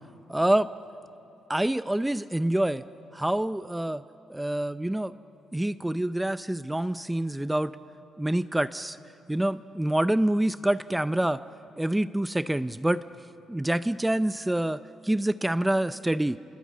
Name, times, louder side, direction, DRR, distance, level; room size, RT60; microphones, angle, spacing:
voice 1, 0.3-0.7 1.5-2.8 3.1-4.0 4.3-5.1 5.5-7.7 8.2-9.0 9.3-11.4 11.8-13.0 13.5-16.4, right 1 dB, 10° right, 13 dB, 0.5 m, -26 dB
27.5 x 22.0 x 8.7 m, 2.7 s
cardioid pair, 90°, 0 cm